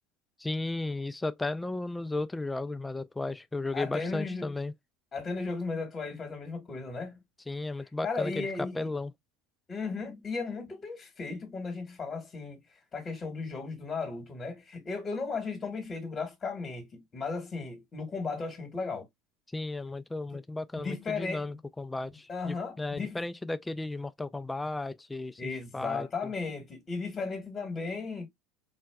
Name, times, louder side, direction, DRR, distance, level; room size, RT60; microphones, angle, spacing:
voice 1, 0.4-4.7 7.5-9.1 19.5-26.1, left 2 dB, 10° left, 0.4 m, -34 dB
voice 2, 3.7-4.5 5.1-7.2 8.0-8.9 9.7-12.6 12.9-19.1 20.3-20.4 20.8-21.6 22.3-23.2 25.4-28.3, left 4 dB, 30° left, 1.3 m, -35 dB
4.1 x 2.2 x 2.2 m
hypercardioid pair, 85°, 0 cm